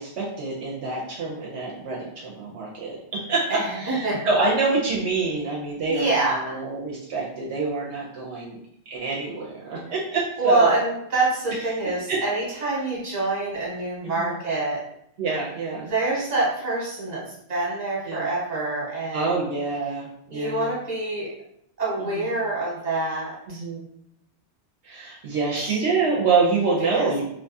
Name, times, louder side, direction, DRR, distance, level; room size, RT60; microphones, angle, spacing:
voice 1, 0.0-8.6 8.9-10.7 12.1-12.2 14.2-14.3 15.2-15.9 18.1-18.2 19.1-20.7 22.0-22.2 23.5-23.9 24.8-27.3, right 4 dB, 75° right, -4 dB, 0.9 m, -26 dB
voice 2, 3.5-4.2 5.9-6.6 10.4-14.8 15.8-19.4 20.3-21.3 21.8-23.6 25.5-25.8 26.9-27.1, right 2 dB, 40° right, -5 dB, 1.1 m, -26 dB
2.8 x 2.2 x 2.6 m, 0.75 s
omnidirectional pair, 1.2 m